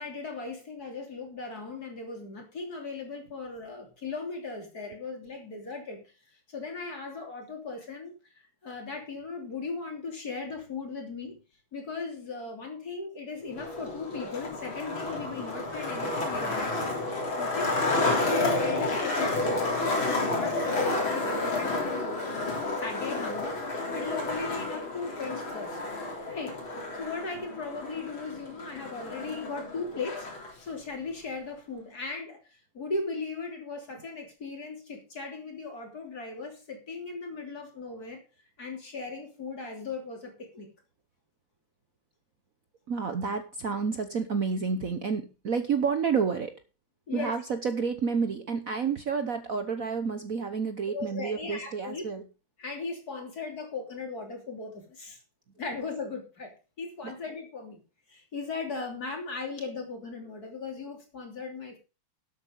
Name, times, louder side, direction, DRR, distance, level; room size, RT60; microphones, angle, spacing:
voice 1, 0.0-6.1 6.5-8.1 8.6-11.4 11.7-16.8 17.4-17.7 18.0-22.5 22.8-25.8 26.3-26.6 27.0-30.3 30.6-32.4 32.7-38.2 38.6-40.7 47.1-47.4 50.9-52.0 52.6-55.2 55.6-57.8 58.1-61.8, left 4 dB, 45° left, 3 dB, 3.6 m, -37 dB
Skateboard, 13.5-30.5, left 2 dB, 70° left, 4.1 m, -31 dB
voice 2, 42.9-46.6 47.1-52.2 57.0-57.1, right 5 dB, 50° right, 9 dB, 1.2 m, -30 dB
12.0 x 8.4 x 5.2 m, 0.32 s
omnidirectional pair, 2.3 m